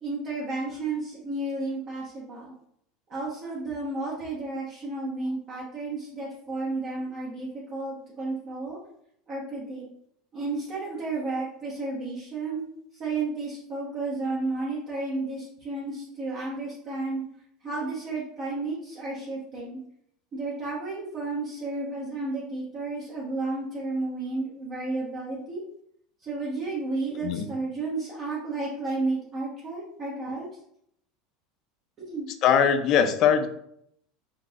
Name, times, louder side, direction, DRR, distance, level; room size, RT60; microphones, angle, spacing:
voice 1, 0.0-2.5 3.1-8.8 9.3-9.9 10.3-12.6 13.0-17.2 17.6-19.8 20.3-25.6 26.2-30.5 32.0-32.3, right 3 dB, 40° right, -6 dB, 0.9 m, -32 dB
voice 2, 27.1-27.5 32.4-33.5, left 8 dB, 50° left, 8 dB, 0.4 m, -21 dB
3.8 x 2.7 x 2.4 m, 0.72 s
supercardioid pair, 110°, 0 cm